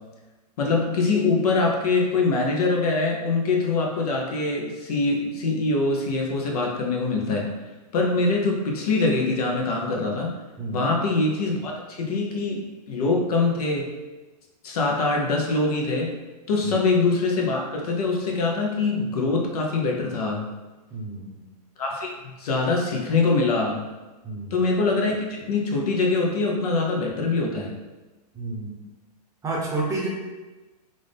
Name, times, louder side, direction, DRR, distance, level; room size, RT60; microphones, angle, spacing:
voice 1, 0.6-7.5 7.9-10.3 10.7-13.9 14.6-16.1 16.5-20.4 21.8-23.8 24.5-27.7, left 3 dB, 65° left, 0 dB, 0.9 m, -23 dB
voice 2, 20.9-21.4 24.2-24.6 28.3-28.8 29.4-30.1, right 3 dB, 15° right, -2 dB, 0.8 m, -30 dB
3.6 x 2.6 x 3.4 m, 1.2 s
hypercardioid pair, 130°, 21 cm